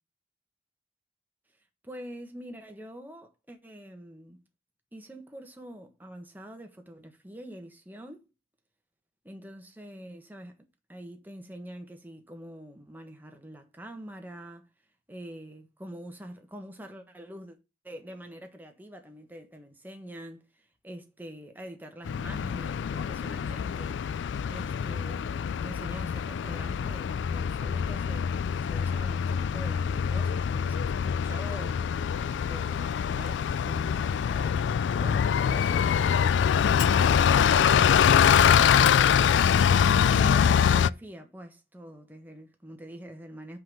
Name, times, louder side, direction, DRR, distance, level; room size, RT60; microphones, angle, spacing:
voice 1, 1.8-4.4 4.9-8.3 9.2-10.5 10.9-14.7 15.1-17.6 17.8-24.0 24.5-31.8 32.5-36.7 36.9-39.7 40.0-43.6, equal, 10° right, 1.4 m, -45 dB
Bus, 22.0-40.9, left 8 dB, 85° left, 0.3 m, -24 dB
5.8 x 5.2 x 6.4 m
head